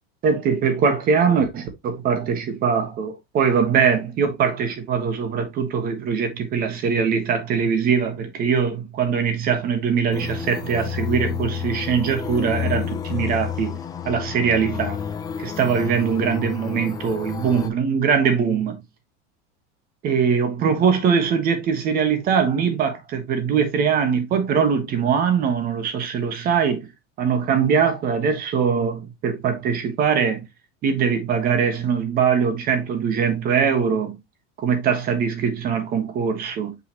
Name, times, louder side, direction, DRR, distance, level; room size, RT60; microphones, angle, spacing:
voice 1, 0.2-13.8 14.0-15.0 15.4-18.8 20.0-26.9 27.2-30.4 30.8-34.2 34.6-36.7, right 6 dB, 30° right, 1.4 m, -22 dB
sound 1, 10.1-17.7, left 8 dB, 10° left, 0.5 m, -30 dB
5.7 x 5.6 x 3.0 m
cardioid pair, 175°, 30 cm